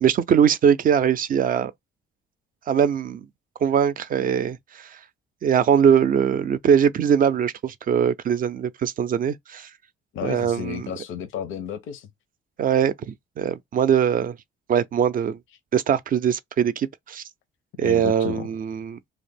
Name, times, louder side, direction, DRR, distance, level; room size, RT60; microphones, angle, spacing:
voice 1, 0.0-1.7 2.7-3.3 3.6-5.0 5.4-9.7 10.2-10.9 12.6-14.4 14.7-15.4 15.7-17.2 17.8-19.0, right 8 dB, 45° right, 0.4 m, -21 dB
voice 2, 10.1-12.1 17.8-18.4, left 9 dB, 85° left, 0.6 m, -32 dB
2.4 x 2.0 x 3.3 m
cardioid pair, 90°, 20 cm